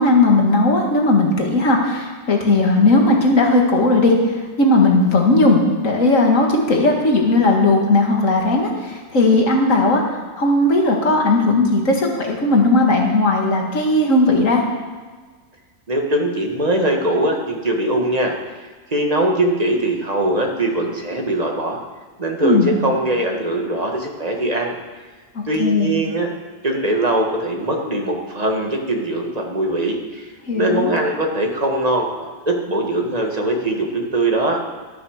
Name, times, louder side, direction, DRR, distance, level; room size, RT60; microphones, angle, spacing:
voice 1, 0.0-4.1 4.6-10.0 10.4-14.6 22.4-22.8 25.3-25.9 30.5-31.0, left 2 dB, 65° left, 1 dB, 2.2 m, -16 dB
voice 2, 15.9-18.3 18.9-21.8 22.2-24.7 25.5-26.3 26.6-34.6, right 1 dB, 30° right, 1 dB, 1.8 m, -21 dB
12.5 x 9.2 x 6.5 m, 1.4 s
omnidirectional pair, 1.4 m